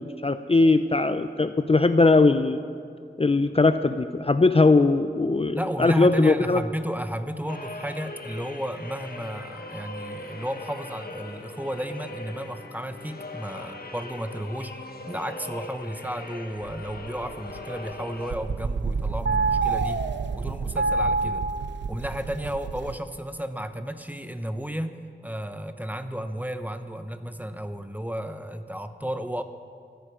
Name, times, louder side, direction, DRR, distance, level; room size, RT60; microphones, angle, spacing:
voice 1, 0.0-2.6 3.2-6.6, left 3 dB, 30° left, 10 dB, 0.5 m, -20 dB
voice 2, 5.5-20.0 20.3-21.5 21.9-25.0 25.2-29.4, equal, 10° right, 9 dB, 0.9 m, -33 dB
sound 1, 7.5-18.3, left 2 dB, 55° left, 1.3 m, -40 dB
sound 2, 16.6-17.9 18.2-22.9, right 4 dB, 75° right, 0.6 m, -27 dB
23.0 x 9.1 x 5.0 m, 2.2 s
wide cardioid pair, 50°, 19 cm